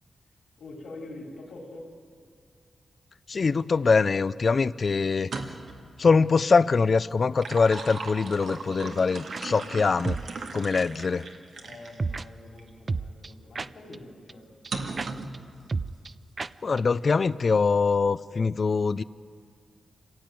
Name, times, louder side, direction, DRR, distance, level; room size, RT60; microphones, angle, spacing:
voice 1, 0.6-1.9 11.6-14.5, left 2 dB, 85° left, 0 dB, 4.0 m, -44 dB
voice 2, 3.3-5.3 6.0-10.2 10.5-11.3 16.6-19.0, left 4 dB, 45° left, 17 dB, 0.5 m, -23 dB
sound 1, 5.2-5.8 7.1-12.0 12.6-12.7 14.7-15.4, right 4 dB, 75° right, 1.9 m, -37 dB
sound 2, 9.3-9.4 10.0-10.3 10.7-10.8 12.0-12.2 12.9-14.0 14.3-14.4 14.6-14.7 15.0-15.1 15.3-15.4 15.7-16.1 16.4-16.5 16.8-16.9 17.1-17.2, right 3 dB, 35° right, 0.5 m, -31 dB
26.0 x 16.5 x 9.3 m, 2.2 s
wide cardioid pair, 120°, 0 cm